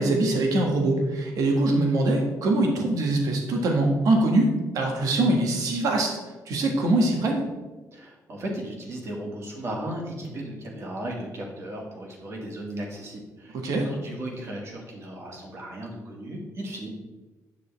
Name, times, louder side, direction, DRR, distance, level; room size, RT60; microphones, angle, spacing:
voice 1, 0.0-6.1 6.5-7.4 13.5-13.9, right 2 dB, 75° right, 1 dB, 1.6 m, -23 dB
voice 2, 7.9-13.6 13.8-16.9, right 1 dB, 50° right, -1 dB, 2.1 m, -36 dB
8.3 x 6.6 x 3.5 m, 1.2 s
cardioid pair, 105°, 6 cm